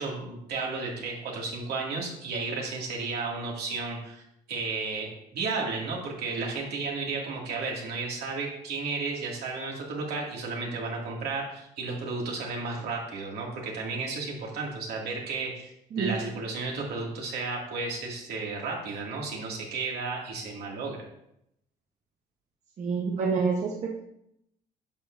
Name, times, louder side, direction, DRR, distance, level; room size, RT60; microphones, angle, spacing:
voice 1, 0.0-15.7 16.0-21.0, right 3 dB, 70° right, -1 dB, 2.4 m, -33 dB
voice 2, 22.8-24.0, right 5 dB, 45° right, -1 dB, 1.1 m, -28 dB
10.5 x 6.9 x 2.7 m, 0.77 s
cardioid pair, 110°, 17 cm